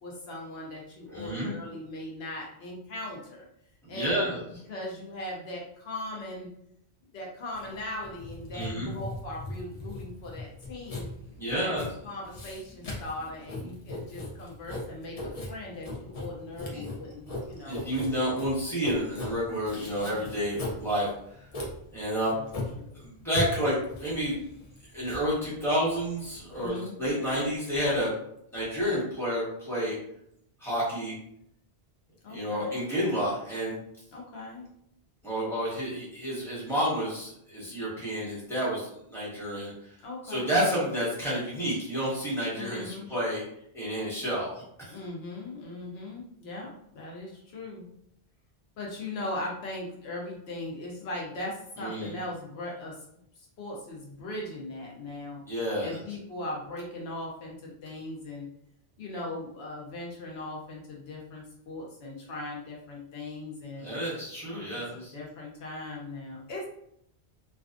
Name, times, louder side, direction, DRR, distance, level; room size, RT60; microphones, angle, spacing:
voice 1, 0.0-3.5 3.9-4.2 4.7-6.5 7.1-11.1 11.6-11.7 12.0-17.9 19.9-20.3 22.3-22.4 22.8-23.0 26.5-27.0 32.2-32.8 34.1-34.7 40.0-40.5 42.5-43.1 44.9-47.9 48.8-53.0 53.4-55.4 55.8-58.5 59.0-63.8 64.7-66.6, left 1 dB, 75° left, -2 dB, 0.8 m, -39 dB
voice 2, 1.1-1.5 3.8-4.4 8.5-8.9 11.4-11.8 16.7-16.8 17.6-21.1 21.4-21.5 21.9-22.4 22.9-24.4 24.9-28.1 28.5-30.0 30.6-31.1 32.3-33.8 35.2-39.9 40.2-43.4 43.7-45.0 51.8-52.1 55.5-56.0 63.8-65.1, equal, 5° left, -8 dB, 1.0 m, -30 dB
Writing, 7.5-26.7, left 2 dB, 45° left, 0.6 m, -39 dB
2.4 x 2.3 x 2.4 m, 0.73 s
omnidirectional pair, 1.1 m